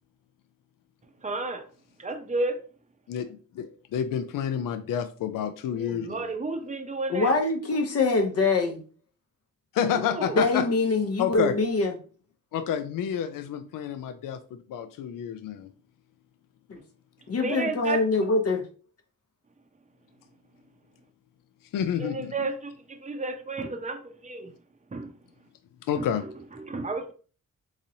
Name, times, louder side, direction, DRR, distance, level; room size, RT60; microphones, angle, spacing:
voice 1, 1.2-1.6 2.0-2.6 5.7-7.3 10.1-10.4 17.3-18.0 22.0-24.5 24.9-25.1 25.9-27.1, right 3 dB, 20° right, 0.6 m, -32 dB
voice 2, 3.5-6.2 9.7-10.7 11.2-11.6 12.5-15.7 21.7-22.3 25.8-26.2, left 8 dB, 75° left, 0.5 m, -29 dB
voice 3, 7.1-8.8 10.4-11.9 16.7-16.8 17.3-18.6, left 3 dB, 45° left, 0.7 m, -24 dB
3.9 x 3.0 x 2.7 m
cardioid pair, 100°, 33 cm